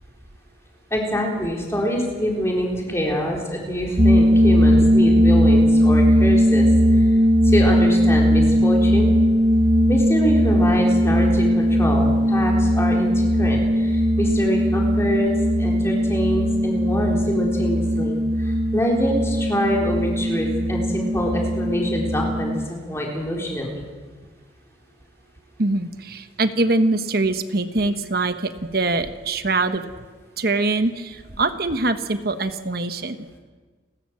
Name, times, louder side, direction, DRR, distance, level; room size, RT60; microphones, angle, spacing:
voice 1, 0.9-7.1 7.4-9.1 9.9-15.3 15.6-23.8, equal, 15° left, -1 dB, 4.2 m, -25 dB
sound 1, 4.0-22.7, equal, 40° right, 1.0 m, -18 dB
voice 2, 25.6-29.8 30.4-33.3, right 2 dB, 55° right, 9 dB, 1.3 m, -23 dB
30.0 x 13.5 x 7.7 m, 1.4 s
head